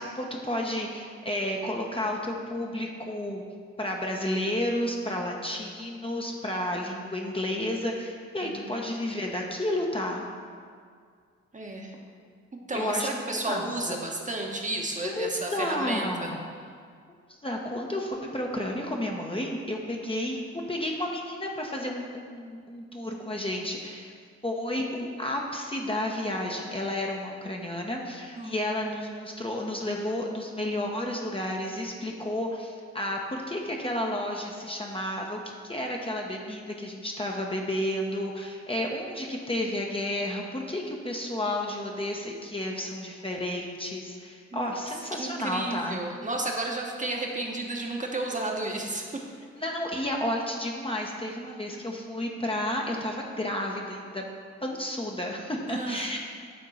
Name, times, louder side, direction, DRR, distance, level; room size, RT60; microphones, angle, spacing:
voice 1, 0.0-3.4 3.8-10.2 12.7-14.0 15.0-16.4 17.4-24.1 24.4-46.0 49.5-54.3 54.6-56.2, left 1 dB, 15° left, 0 dB, 1.0 m, -31 dB
voice 2, 8.4-8.8 11.5-12.0 12.7-16.3 24.8-24.9 28.3-28.6 44.5-44.8 45.1-49.0 55.7-56.1, right 2 dB, 25° right, 0 dB, 1.2 m, -32 dB
8.7 x 3.7 x 5.5 m, 2.1 s
hypercardioid pair, 45°, 32 cm